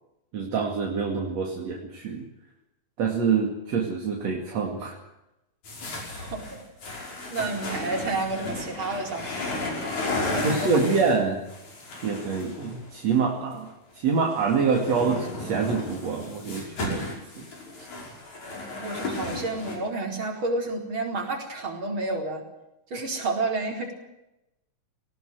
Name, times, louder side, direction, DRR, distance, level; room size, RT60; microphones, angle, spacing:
voice 1, 0.3-2.3 3.0-5.0 10.4-11.4 12.0-13.7 13.9-17.5 17.8-17.9, right 5 dB, 60° right, 0 dB, 3.5 m, -26 dB
sound 1, 5.6-13.1 14.1-19.8, left 2 dB, 80° left, 7.1 m, -34 dB
voice 2, 6.2-6.6 7.3-9.4 10.0-11.0 18.8-22.4 22.9-23.9, right 3 dB, 40° right, 2 dB, 5.0 m, -30 dB
19.0 x 19.0 x 7.9 m, 0.91 s
omnidirectional pair, 3.3 m